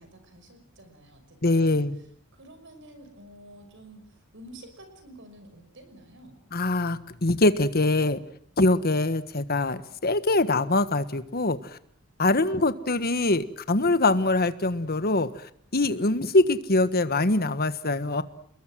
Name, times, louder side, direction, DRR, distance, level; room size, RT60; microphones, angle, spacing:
voice 1, 0.0-2.1 2.3-6.4 12.2-12.4, right 1 dB, 60° right, 8 dB, 5.9 m, -50 dB
voice 2, 1.4-2.0 6.5-8.2 8.6-11.6 12.2-15.3 15.7-18.2, left 2 dB, 45° left, 12 dB, 1.4 m, -23 dB
29.5 x 21.5 x 7.6 m, 0.63 s
head